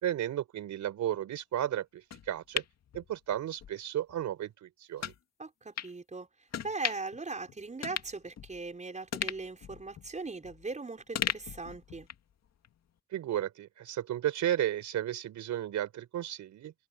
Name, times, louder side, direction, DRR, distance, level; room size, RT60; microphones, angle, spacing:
voice 1, 0.0-2.6 2.9-5.1 13.1-16.7, right 11 dB, 75° right, 4.5 m, -33 dB
sound 1, 2.1-3.7 4.1-4.2 5.0-5.2 5.8-5.9 6.5-7.2 7.5-7.6 7.8-8.7 9.1-10.7 11.1-12.3 12.6-12.7, left 9 dB, 60° left, 2.2 m, -37 dB
voice 2, 5.4-6.3 6.6-12.1, right 3 dB, 25° right, 5.4 m, -39 dB
cardioid pair, 90°, 30 cm